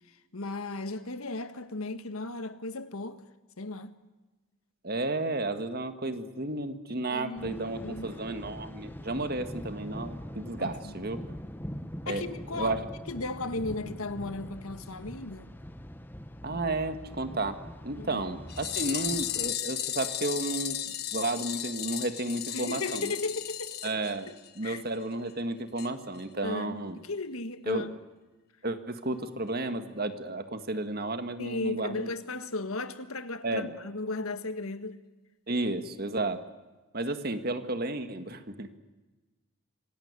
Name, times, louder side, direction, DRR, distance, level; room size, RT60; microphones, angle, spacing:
voice 1, 0.3-3.2 3.6-3.9 7.1-8.2 10.6-11.0 12.0-12.7 13.1-15.5 18.0-18.2 22.5-23.9 24.6-24.8 26.4-28.0 31.4-35.0, left 2 dB, 85° left, 1.6 m, -36 dB
voice 2, 4.8-11.3 12.1-12.2 12.5-12.9 16.4-17.6 17.8-20.8 21.1-23.2 23.8-24.3 24.6-27.0 27.7-27.9 28.6-32.1 33.4-33.7 35.5-36.4 36.9-38.8, right 2 dB, 45° right, 1.8 m, -32 dB
Thunder, 7.4-19.5, equal, 10° left, 1.0 m, -43 dB
sound 1, 18.5-24.7 24.9-25.0 25.3-25.4 25.8-25.9 26.2-26.3, left 11 dB, 45° left, 1.6 m, -35 dB
26.5 x 18.0 x 9.7 m
head